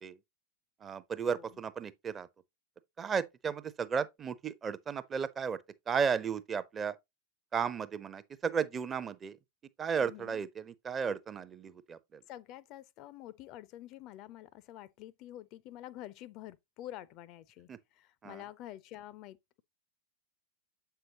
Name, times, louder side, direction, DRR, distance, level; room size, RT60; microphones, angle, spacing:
voice 1, 0.8-2.3 3.0-5.6 5.9-7.0 7.5-9.4 9.8-12.2 17.7-17.8 18.2-18.4, right 6 dB, 20° right, 0.5 m, -34 dB
voice 2, 10.0-10.4 12.3-19.6, left 13 dB, 40° left, 0.4 m, -48 dB
7.7 x 5.6 x 2.8 m
figure-of-eight pair, 90°, 0 cm